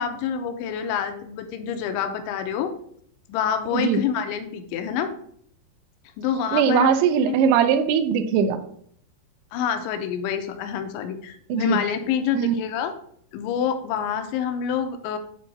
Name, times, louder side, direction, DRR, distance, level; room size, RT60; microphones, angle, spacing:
voice 1, 0.0-2.7 3.3-5.1 6.2-6.9 7.3-7.4 9.5-12.9 13.3-15.2, left 8 dB, 85° left, 7 dB, 3.0 m, -27 dB
voice 2, 6.5-8.6 11.5-11.8 12.4-12.5, right 7 dB, 80° right, 9 dB, 3.0 m, -20 dB
9.0 x 3.8 x 5.7 m, 0.64 s
omnidirectional pair, 5.3 m